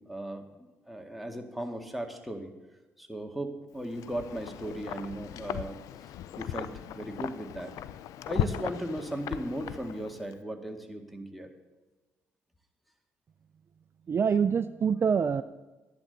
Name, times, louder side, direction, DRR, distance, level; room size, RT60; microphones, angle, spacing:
voice 1, 0.0-2.5 3.0-5.8 6.0-7.7 8.2-11.5, right 1 dB, ahead, 3 dB, 1.8 m, -37 dB
Wind, 3.8-10.3, left 11 dB, 75° left, 0.5 m, -37 dB
voice 2, 14.1-15.4, right 6 dB, 45° right, 13 dB, 0.4 m, -25 dB
13.5 x 10.5 x 4.0 m, 1.2 s
supercardioid pair, 55°, 6 cm